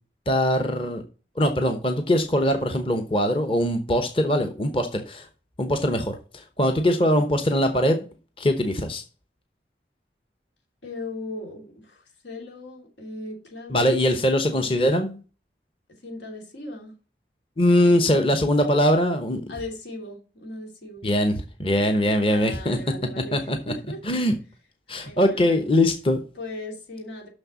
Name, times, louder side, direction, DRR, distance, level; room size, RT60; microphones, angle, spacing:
voice 1, 0.3-1.0 1.4-5.3 5.6-8.0 8.4-9.0 13.7-15.2 17.6-19.4 21.0-22.8 23.3-23.7 24.0-24.4 24.9-26.2, left 1 dB, 30° left, 6 dB, 0.9 m, -22 dB
voice 2, 10.8-14.2 15.9-17.0 17.8-18.3 19.5-21.1 22.2-24.0 24.9-25.7 26.3-27.3, left 2 dB, 90° left, 1 dB, 3.0 m, -38 dB
6.5 x 6.3 x 7.3 m, 0.36 s
head